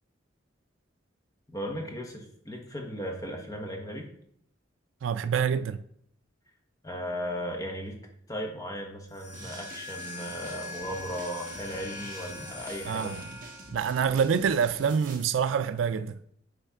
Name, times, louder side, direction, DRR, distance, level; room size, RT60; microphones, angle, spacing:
voice 1, 1.5-4.1 6.8-8.0 8.3-13.1, equal, 20° left, 1.1 m, -36 dB
voice 2, 5.0-5.8 12.9-13.2 13.7-16.2, right 7 dB, 80° right, 0.3 m, -26 dB
sound 1, 9.1-13.9, left 3 dB, 40° left, 1.4 m, -42 dB
sound 2, 9.3-15.3, right 3 dB, 45° right, 1.0 m, -47 dB
9.7 x 3.3 x 3.6 m
head